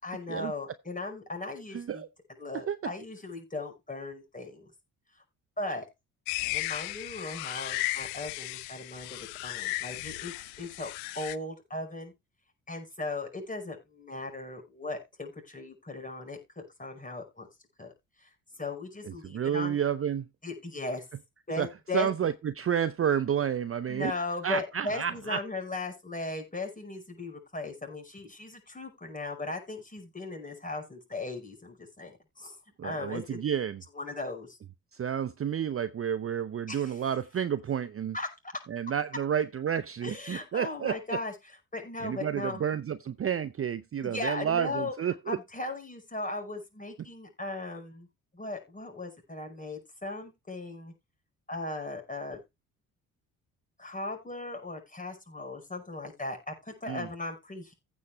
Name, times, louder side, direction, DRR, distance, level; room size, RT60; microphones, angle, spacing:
voice 1, 0.0-2.0 2.4-4.7 5.6-5.9 6.5-12.1 12.7-17.5 17.8-17.9 18.2-18.3 18.6-19.8 20.4-21.0 21.5-22.1 23.9-32.6 32.8-33.4 33.9-34.6 36.7-37.0 38.1-38.3 40.0-41.3 41.7-42.6 44.0-44.9 45.3-48.1 48.3-50.9 51.5-52.4 53.8-57.7, left 2 dB, 20° left, 5.5 m, -37 dB
voice 2, 1.7-2.1 2.7-2.8 19.0-20.3 21.6-21.7 21.9-24.1 24.4-25.4 32.8-33.8 34.9-38.2 38.7-41.2 42.0-45.4 56.9-57.1, right 8 dB, 35° right, 0.6 m, -30 dB
sound 1, 6.3-11.4, left 20 dB, 80° left, 0.6 m, -35 dB
15.0 x 5.8 x 3.4 m
hypercardioid pair, 45°, 42 cm